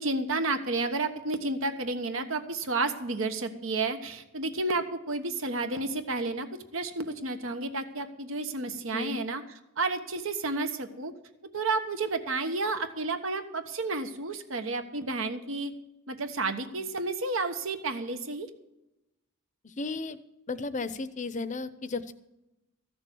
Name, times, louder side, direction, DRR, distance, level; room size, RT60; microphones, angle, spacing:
voice 1, 0.0-6.5 6.7-9.4 9.8-11.1 11.5-15.7 16.1-18.5, right 3 dB, 75° right, 8 dB, 1.2 m, -31 dB
voice 2, 19.6-20.2 20.5-22.1, left 3 dB, 35° left, 14 dB, 0.7 m, -34 dB
14.5 x 6.9 x 8.3 m, 0.94 s
head